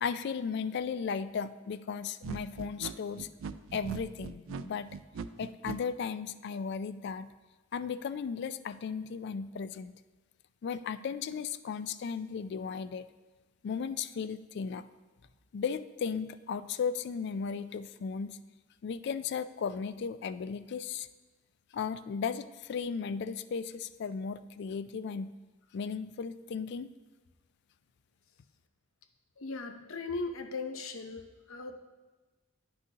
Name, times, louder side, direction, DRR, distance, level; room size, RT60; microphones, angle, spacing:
voice 1, 0.0-3.3 3.7-4.9 5.4-7.3 7.7-9.9 10.6-13.0 13.6-14.8 15.5-18.4 18.8-21.1 21.7-25.3 25.7-26.9, left 6 dB, 55° left, 14 dB, 0.3 m, -35 dB
sound 1, 2.2-5.8, right 5 dB, 70° right, 0.3 m, -40 dB
voice 2, 29.4-31.8, left 3 dB, 80° left, 6 dB, 0.7 m, -38 dB
10.5 x 6.1 x 2.8 m, 1.2 s
head